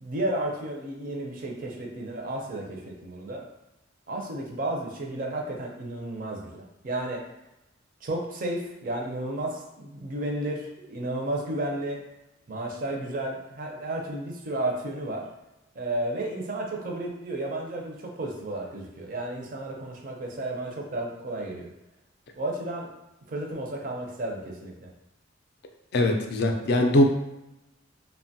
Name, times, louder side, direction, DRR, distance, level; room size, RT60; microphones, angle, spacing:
voice 1, 0.0-3.4 4.1-7.2 8.0-12.0 12.5-15.2 15.7-21.7 22.4-22.9 23.3-24.9, right 1 dB, 45° right, 0 dB, 0.4 m, -32 dB
voice 2, 25.9-27.0, left 1 dB, 50° left, 3 dB, 0.3 m, -21 dB
2.9 x 2.1 x 2.7 m, 0.93 s
head